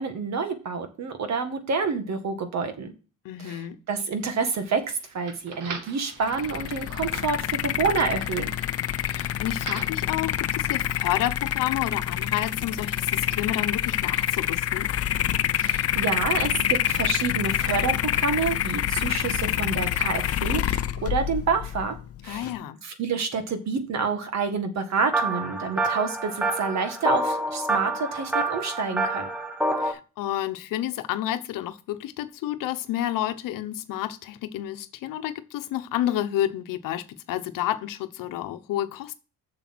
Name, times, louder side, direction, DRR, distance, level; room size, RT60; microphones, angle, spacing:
voice 1, 0.0-2.9 3.4-8.6 15.6-22.0 22.2-22.5 22.8-29.3, right 5 dB, 55° right, 2.0 m, -28 dB
voice 2, 3.2-3.8 9.1-14.9 22.3-22.8 29.8-39.1, left 12 dB, 75° left, 1.0 m, -30 dB
sound 1, 4.2-10.0, right 5 dB, 70° right, 2.2 m, -43 dB
sound 2, 6.2-22.6, left 11 dB, 45° left, 0.6 m, -27 dB
sound 3, 25.1-29.9, right 2 dB, 5° right, 1.3 m, -27 dB
7.2 x 6.9 x 6.2 m
cardioid pair, 100°, 33 cm